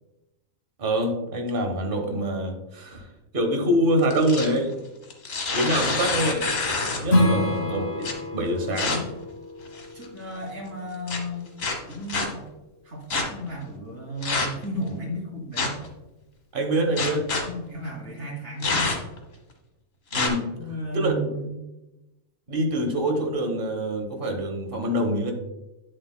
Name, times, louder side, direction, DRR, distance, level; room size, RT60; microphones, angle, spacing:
voice 1, 0.8-4.7 5.5-6.5 7.0-9.1 16.5-17.3 20.1-20.6 20.9-21.3 22.5-25.3, right 1 dB, 45° right, 3 dB, 1.4 m, -25 dB
sound 1, 4.0-4.6 5.1-7.2 8.0-8.1 8.8-9.0 9.6-10.0 11.1-11.2 11.6-12.3 13.1-13.2 14.2-14.6 15.6-15.9 17.0-17.4 18.6-19.2 20.1-20.3, left 3 dB, 90° left, 1.8 m, -26 dB
Strum, 7.1-12.3, left 1 dB, 55° left, 1.9 m, -28 dB
voice 2, 7.3-7.6 9.9-11.5 11.9-12.5 12.8-15.8 17.4-19.0 20.5-21.6, equal, 85° right, -6 dB, 3.0 m, -34 dB
9.4 x 7.7 x 2.2 m, 0.97 s
omnidirectional pair, 1.3 m